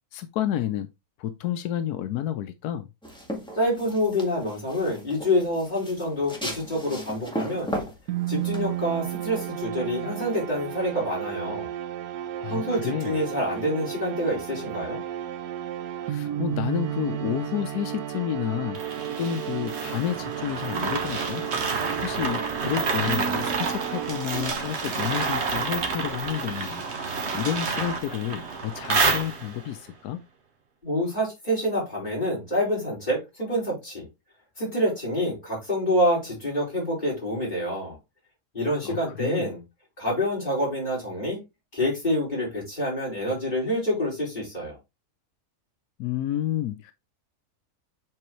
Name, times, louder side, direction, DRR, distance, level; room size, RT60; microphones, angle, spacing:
voice 1, 0.1-0.9 1.2-2.9 12.4-13.2 16.0-21.4 21.7-30.2 38.8-39.5 46.0-46.9, left 11 dB, 90° left, 1.2 m, -30 dB
sound 1, 3.0-9.6, equal, 5° left, 1.8 m, -36 dB
voice 2, 3.5-7.7 8.3-11.7 12.5-15.0 30.8-34.1 34.6-37.9 38.5-39.6 40.0-41.4 41.7-44.8, equal, 30° left, 5.0 m, -27 dB
sound 2, 8.1-24.8, right 11 dB, 75° right, 1.1 m, -33 dB
sound 3, 18.7-29.7, right 4 dB, 50° right, 1.3 m, -29 dB
7.7 x 4.6 x 3.1 m
omnidirectional pair, 1.6 m